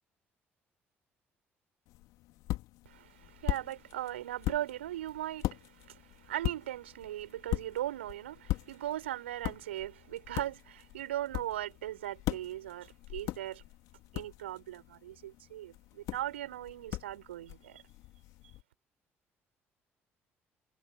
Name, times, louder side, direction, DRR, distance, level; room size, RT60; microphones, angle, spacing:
sound 1, 1.9-18.6, left 18 dB, 65° left, 2.3 m, -40 dB
voice 1, 2.9-13.6 14.1-17.8, right 13 dB, 80° right, 5.5 m, -39 dB
figure-of-eight pair, 50°, 6 cm